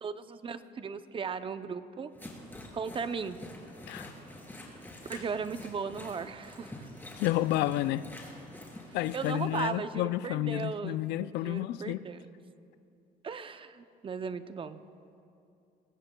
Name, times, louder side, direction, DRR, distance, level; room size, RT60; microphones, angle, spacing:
voice 1, 0.0-2.1 2.7-3.4 5.1-6.9 9.1-12.3 13.2-14.8, right 5 dB, 30° right, 0.6 m, -37 dB
sound 1, 2.2-9.7, left 1 dB, 10° left, 3.0 m, -47 dB
voice 2, 7.2-8.0 8.9-12.0, left 15 dB, 85° left, 0.4 m, -30 dB
22.5 x 18.0 x 2.3 m
cardioid pair, 110°, 17 cm